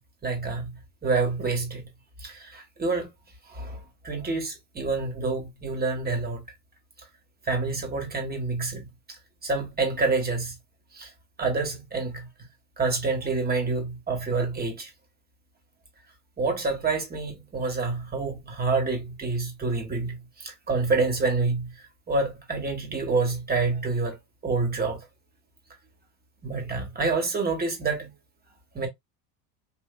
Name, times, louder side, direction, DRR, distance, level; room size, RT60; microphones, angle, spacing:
voice 1, 0.2-0.7 1.0-1.9 2.2-3.1 3.5-3.8 4.0-6.4 7.5-8.9 9.4-10.5 10.9-11.1 11.4-12.3 12.8-14.9 16.4-21.7 22.1-24.2 24.4-25.0 26.4-28.1 28.7-28.9, right 3 dB, 20° right, 1.5 m, -27 dB
3.3 x 2.7 x 2.3 m
supercardioid pair, 105°, 47 cm